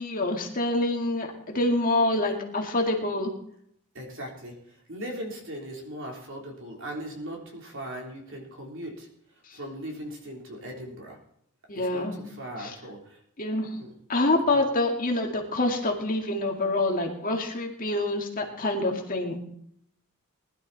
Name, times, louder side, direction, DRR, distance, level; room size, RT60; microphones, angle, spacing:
voice 1, 0.0-3.3 9.5-9.6 11.7-12.2 12.6-12.8 13.4-13.7 14.1-19.4, left 2 dB, 40° left, 2 dB, 2.2 m, -26 dB
voice 2, 3.9-4.5 4.9-9.1 9.5-11.2 11.8-13.2 13.8-13.9 14.4-14.6, right 1 dB, 60° right, 0 dB, 3.5 m, -39 dB
20.0 x 11.5 x 4.2 m, 0.71 s
head